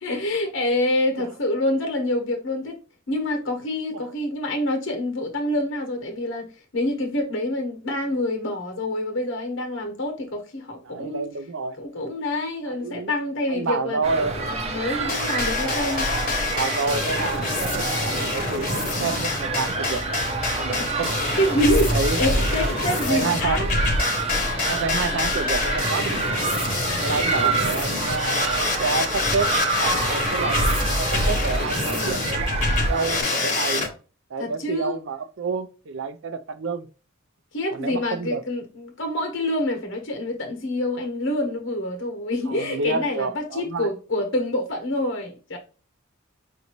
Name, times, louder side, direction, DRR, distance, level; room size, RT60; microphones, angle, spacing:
voice 1, 0.0-2.8 3.1-6.5 6.7-11.3 11.8-16.1 20.8-21.0 21.4-23.7 27.4-27.5 31.9-32.2 34.4-35.0 37.5-45.6, left 1 dB, 65° left, 1.1 m, -26 dB
voice 2, 10.8-11.8 12.7-13.1 13.5-14.4 16.4-20.3 20.6-21.1 21.9-22.4 22.9-23.7 24.7-26.4 27.0-29.5 29.8-30.6 31.0-33.9 34.3-36.9 37.7-38.4 42.5-43.9, right 4 dB, 60° right, 0.5 m, -29 dB
sound 1, 14.0-33.2, right 3 dB, 30° right, 0.8 m, -28 dB
sound 2, 15.1-33.9, left 2 dB, 40° left, 1.0 m, -26 dB
5.2 x 2.6 x 3.0 m
head